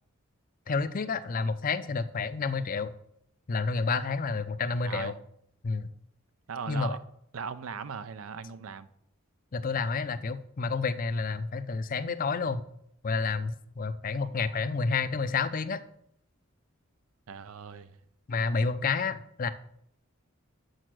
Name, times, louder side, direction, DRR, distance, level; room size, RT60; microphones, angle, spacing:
voice 1, 0.7-2.9 3.5-5.1 5.6-5.9 6.7-7.0 9.5-12.6 13.0-15.8 18.3-19.5, left 4 dB, 40° left, 0.5 m, -29 dB
voice 2, 4.8-5.1 6.5-7.0 7.3-8.9 14.2-14.7 17.3-18.0, right 6 dB, 90° right, 0.5 m, -39 dB
6.7 x 6.4 x 6.2 m
head